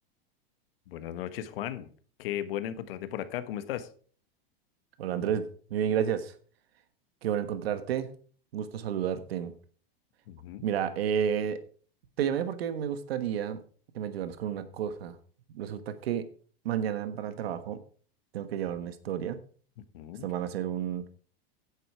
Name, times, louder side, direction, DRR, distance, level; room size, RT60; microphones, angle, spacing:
voice 1, 0.9-1.9 2.2-3.9 10.3-10.6 19.9-20.3, left 11 dB, 70° left, 12 dB, 1.4 m, -36 dB
voice 2, 5.0-6.3 7.2-8.1 8.5-9.5 10.6-11.6 12.2-13.6 13.9-15.2 15.5-16.3 16.6-17.8 18.3-19.4 20.2-21.0, right 9 dB, 80° right, 11 dB, 1.4 m, -31 dB
9.9 x 8.1 x 4.9 m, 0.43 s
hypercardioid pair, 120°, 30 cm